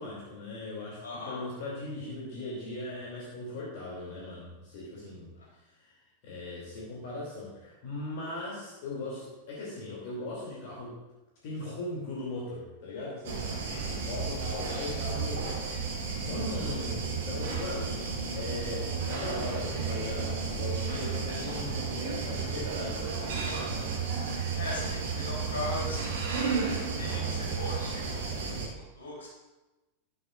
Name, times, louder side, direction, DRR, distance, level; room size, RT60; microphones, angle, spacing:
voice 1, 0.0-5.3 5.8-5.9 6.2-11.0 11.4-15.9 16.2-18.0 18.3-23.6, left 2 dB, 50° left, -5 dB, 2.8 m, -39 dB
voice 2, 1.0-1.4 13.6-14.1 24.5-26.7 27.0-29.3, left 2 dB, 65° left, -3 dB, 3.4 m, -39 dB
sound 1, 13.2-28.7, right 5 dB, 55° right, 1.5 m, -33 dB
11.5 x 11.0 x 2.5 m, 1.1 s
figure-of-eight pair, 90°, 0 cm